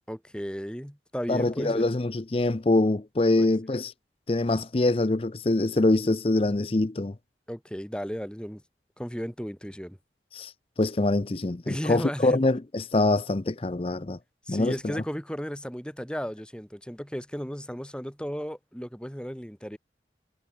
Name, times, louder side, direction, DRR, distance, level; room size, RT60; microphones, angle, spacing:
voice 1, 0.1-1.9 3.4-3.5 7.5-8.6 9.0-10.0 11.7-12.4 14.5-19.8, equal, 5° left, 4.0 m, -34 dB
voice 2, 1.3-3.9 4.3-7.1 10.3-10.5 10.8-14.2 14.5-15.0, left 2 dB, 30° left, 0.6 m, -24 dB
head